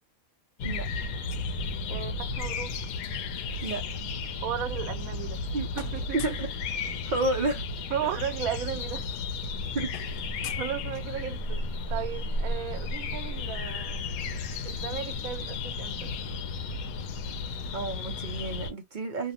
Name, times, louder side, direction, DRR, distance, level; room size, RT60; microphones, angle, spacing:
sound 1, 0.6-18.7, left 3 dB, 80° left, 1.1 m, -33 dB
voice 1, 1.9-2.7 4.4-5.4 5.8-6.3 7.9-9.1 10.6-14.1 14.6-16.1, right 10 dB, 80° right, 1.0 m, -35 dB
sound 2, 4.7-5.5 5.7-6.5 7.9-8.0 8.3-8.5 8.7-11.4, left 6 dB, 60° left, 0.6 m, -47 dB
voice 2, 6.1-6.5 7.1-7.6 9.7-9.9 17.7-19.3, right 2 dB, 50° right, 0.6 m, -30 dB
2.8 x 2.0 x 2.7 m
omnidirectional pair, 1.5 m